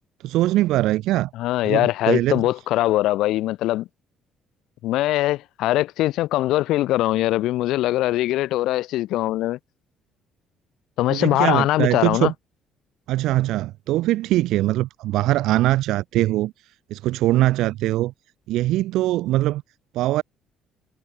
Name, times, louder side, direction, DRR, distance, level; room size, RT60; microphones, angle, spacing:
voice 1, 0.2-1.3 1.7-2.4 11.1-12.3 13.1-16.5 16.9-18.1 18.5-19.6 19.9-20.2, right 16 dB, 75° right, 3.6 m, -22 dB
voice 2, 1.3-3.9 4.8-9.6 11.0-12.3, left 15 dB, 75° left, 1.5 m, -22 dB
hypercardioid pair, 60°, 0 cm